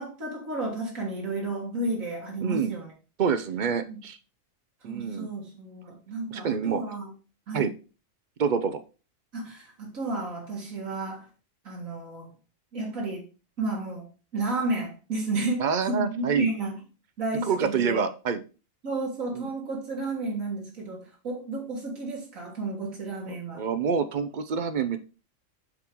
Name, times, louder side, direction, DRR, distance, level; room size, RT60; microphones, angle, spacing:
voice 1, 0.0-2.9 3.9-4.0 4.8-7.1 7.5-7.7 9.3-11.3 11.6-12.3 12.7-13.3 13.6-14.1 14.3-16.8 17.2-18.0 18.8-23.7, right 2 dB, 80° right, -2 dB, 2.2 m, -32 dB
voice 2, 2.4-2.7 3.2-4.2 4.8-5.3 6.3-6.8 7.5-7.7 8.4-8.8 15.6-16.5 17.5-18.4 19.3-19.5 23.3-25.0, right 6 dB, 50° right, 11 dB, 0.6 m, -27 dB
7.6 x 3.7 x 4.5 m, 0.34 s
omnidirectional pair, 1.4 m